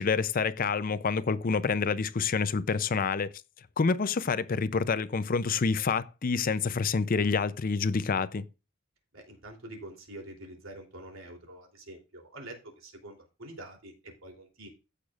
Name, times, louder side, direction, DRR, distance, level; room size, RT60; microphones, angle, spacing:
voice 1, 0.0-3.3 3.8-8.4, left 5 dB, 45° left, 0.5 m, -27 dB
voice 2, 9.1-14.7, right 1 dB, 80° right, 3.2 m, -46 dB
15.0 x 6.6 x 2.4 m
head